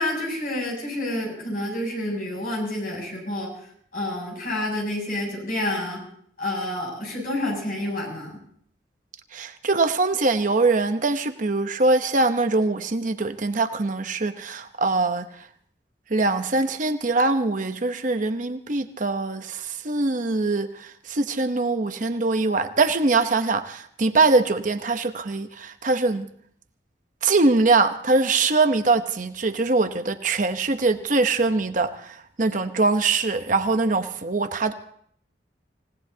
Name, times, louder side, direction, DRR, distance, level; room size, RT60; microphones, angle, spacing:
voice 1, 0.0-3.5 3.9-6.0 6.4-8.4, left 1 dB, 50° left, 0 dB, 7.3 m, -28 dB
voice 2, 9.3-15.3 16.1-26.3 27.2-34.7, right 3 dB, 45° right, 8 dB, 0.9 m, -23 dB
28.5 x 17.0 x 2.8 m, 0.62 s
head